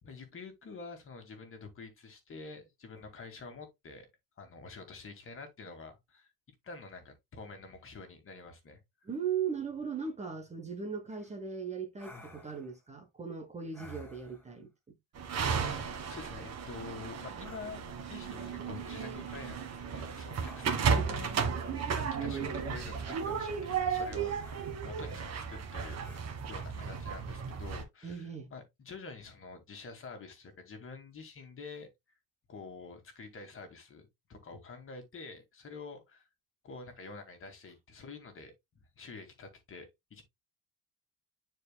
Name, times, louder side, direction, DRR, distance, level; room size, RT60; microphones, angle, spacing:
voice 1, 0.0-4.1 4.4-6.3 6.6-8.8 15.7-19.6 19.9-21.3 21.9-26.0 26.5-31.9 32.5-36.3 36.6-40.2, left 4 dB, 35° left, 2.1 m, -47 dB
voice 2, 9.0-15.0 20.6-21.1 28.0-28.5, right 6 dB, 20° right, 1.0 m, -38 dB
sound 1, 11.1-11.3 12.0-12.8 13.7-14.6 15.6-16.2 17.4-17.6 18.8-19.4 20.4-21.0 23.1-23.7 24.4-25.0 26.0-26.3, left 1 dB, 5° left, 1.9 m, -54 dB
sound 2, 15.1-27.8, right 6 dB, 45° right, 1.5 m, -34 dB
9.4 x 4.6 x 2.2 m
cardioid pair, 155°, 36 cm